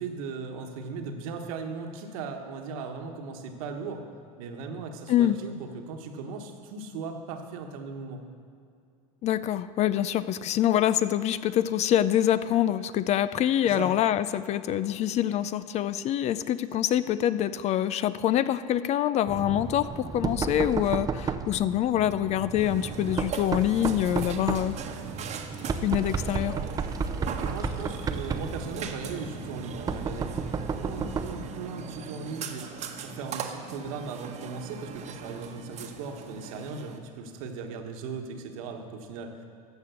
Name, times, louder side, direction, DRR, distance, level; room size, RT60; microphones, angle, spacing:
voice 1, 0.0-4.0 4.4-8.2 13.6-13.9 27.4-30.4 30.8-39.4, right 4 dB, 70° right, 4 dB, 1.4 m, -38 dB
voice 2, 9.2-24.8 25.8-26.6, left 11 dB, 40° left, 15 dB, 0.4 m, -25 dB
Knock, 19.3-31.5, right 5 dB, 20° right, 0.6 m, -33 dB
Burping eructation, 22.6-37.0, right 5 dB, 40° right, 1.1 m, -39 dB
14.0 x 5.3 x 6.9 m, 2.4 s
hypercardioid pair, 100°, 19 cm